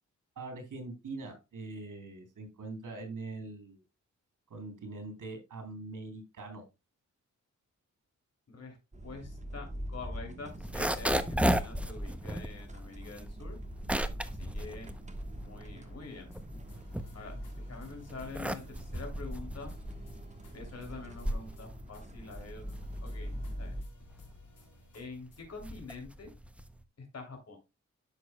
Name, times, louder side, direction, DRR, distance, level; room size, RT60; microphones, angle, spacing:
voice 1, 0.4-3.8 4.5-6.7, right 3 dB, 80° right, 5 dB, 3.5 m, -43 dB
sound 1, 8.9-23.8, equal, 25° right, 1.3 m, -43 dB
voice 2, 9.0-13.6 14.4-14.9 15.4-16.3 17.1-17.3 17.7-19.7 20.5-22.7 23.0-23.3 23.6-23.7 24.9-26.3 27.0-27.6, left 4 dB, 55° left, 2 dB, 3.0 m, -46 dB
sound 2, 10.5-15.8 16.1-17.6 18.1-26.8, equal, 5° right, 0.6 m, -35 dB
sound 3, 16.1-16.4 16.7-19.1 19.3-19.4 19.7-22.0 22.3-22.4 22.7-25.4, left 4 dB, 80° left, 3.7 m, -59 dB
11.0 x 6.9 x 2.2 m, 0.25 s
wide cardioid pair, 120°, 30 cm